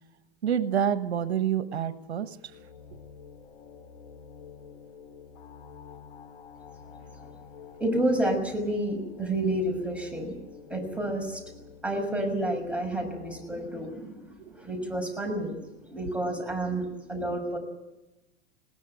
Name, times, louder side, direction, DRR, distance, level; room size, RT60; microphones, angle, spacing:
voice 1, 0.4-2.4 14.4-14.5, right 9 dB, 90° right, 12 dB, 1.3 m, -27 dB
sound 1, 2.1-13.5, left 6 dB, 65° left, 6.3 m, -49 dB
voice 2, 7.8-10.3 10.7-11.4 11.8-17.6, right 1 dB, 5° right, 3 dB, 6.3 m, -30 dB
20.5 x 18.5 x 9.0 m, 0.99 s
hypercardioid pair, 115°, 31 cm